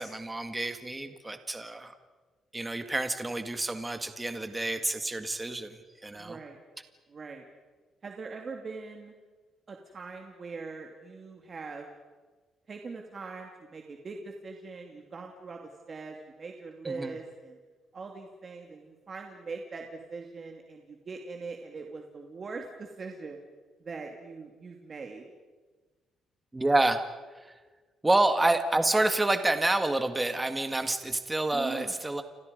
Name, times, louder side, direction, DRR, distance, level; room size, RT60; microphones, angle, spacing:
voice 1, 0.0-1.9 2.5-6.4 16.8-17.1 26.5-27.0 27.3-27.5 28.0-32.2, right 2 dB, 15° right, 8 dB, 1.8 m, -28 dB
voice 2, 6.2-6.6 7.1-7.4 8.0-9.1 9.7-11.9 12.7-15.6 15.9-17.6 17.9-23.4 23.8-25.2 31.5-31.9, right 4 dB, 35° right, 2 dB, 2.6 m, -41 dB
30.0 x 26.5 x 5.3 m, 1.3 s
cardioid pair, 125°, 0 cm